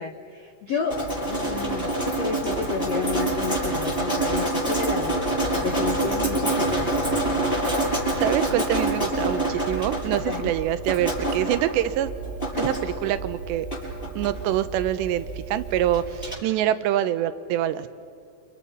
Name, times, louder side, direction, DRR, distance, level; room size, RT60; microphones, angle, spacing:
voice 1, 0.0-5.2 5.5-7.4 10.3-10.5, left 5 dB, 70° left, 3 dB, 1.5 m, -31 dB
Drip, 0.9-16.3, right 1 dB, 10° left, 7.1 m, -27 dB
voice 2, 8.2-12.1 12.6-13.7 14.2-17.9, right 12 dB, 85° right, 12 dB, 3.1 m, -25 dB
29.5 x 27.5 x 5.6 m, 2.3 s
omnidirectional pair, 4.9 m